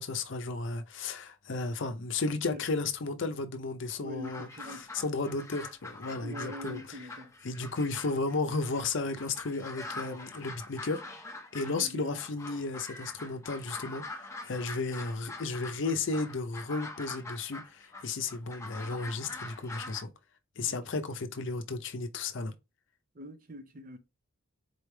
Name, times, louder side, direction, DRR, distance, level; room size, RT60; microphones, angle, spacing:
voice 1, 0.0-4.5 4.9-7.0 7.4-11.0 11.5-20.1 20.6-22.5, left 3 dB, 60° left, 0.6 m, -34 dB
voice 2, 4.0-4.9 6.2-7.3 11.7-12.2 20.6-20.7 23.1-24.0, left 1 dB, 40° right, 0.7 m, -43 dB
sound 1, 4.2-20.0, left 2 dB, 15° left, 0.6 m, -44 dB
4.1 x 3.2 x 3.3 m
head